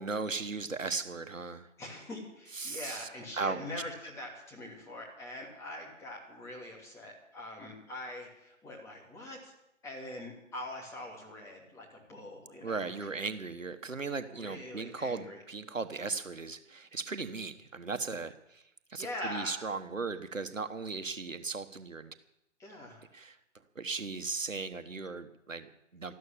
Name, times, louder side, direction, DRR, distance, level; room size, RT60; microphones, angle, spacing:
voice 1, 0.0-1.7 2.5-3.1 3.3-3.6 12.6-18.6 18.9-22.1 23.1-23.4 23.7-26.1, right 4 dB, 85° right, 10 dB, 1.4 m, -37 dB
voice 2, 1.8-9.5 9.8-13.1 14.3-15.4 19.0-19.6 22.6-23.0 26.1-26.2, left 1 dB, 10° left, -2 dB, 2.9 m, -43 dB
13.5 x 12.5 x 7.3 m, 0.83 s
figure-of-eight pair, 145°, 38 cm